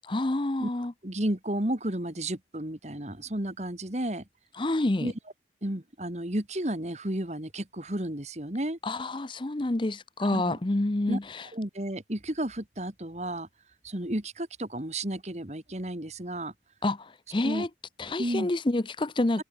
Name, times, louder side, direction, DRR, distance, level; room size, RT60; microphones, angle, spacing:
voice 1, 0.1-0.9 4.6-5.1 8.8-11.5 16.8-17.7 18.0-19.4, left 2 dB, 25° left, 0.6 m, -28 dB
voice 2, 1.0-4.2 5.0-5.1 5.6-8.8 10.3-10.5 11.1-11.2 11.5-13.5 13.8-16.5 17.4-17.7 18.2-18.5, right 1 dB, 40° right, 2.3 m, -32 dB
head